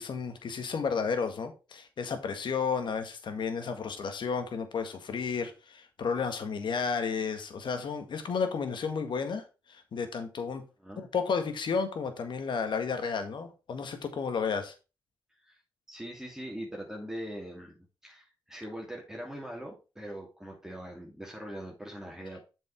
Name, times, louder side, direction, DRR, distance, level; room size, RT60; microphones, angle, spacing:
voice 1, 0.0-10.6 11.0-14.7, left 5 dB, 65° left, 1.7 m, -32 dB
voice 2, 15.9-17.8 18.0-22.5, equal, 5° right, 2.6 m, -41 dB
7.4 x 5.4 x 4.5 m
cardioid pair, 60°, 9 cm